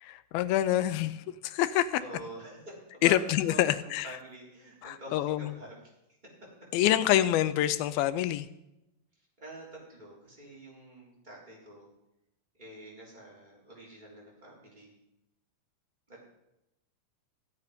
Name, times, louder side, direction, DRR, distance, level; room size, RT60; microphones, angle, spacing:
voice 1, 0.0-1.9 3.0-4.1 4.8-5.5 6.7-8.5, left 13 dB, 80° left, 13 dB, 2.4 m, -26 dB
voice 2, 2.0-3.2 3.5-5.7 9.4-11.9 12.5-14.9 16.1-16.2, right 1 dB, 10° right, -4 dB, 3.9 m, -47 dB
15.5 x 8.2 x 5.2 m, 0.88 s
omnidirectional pair, 4.4 m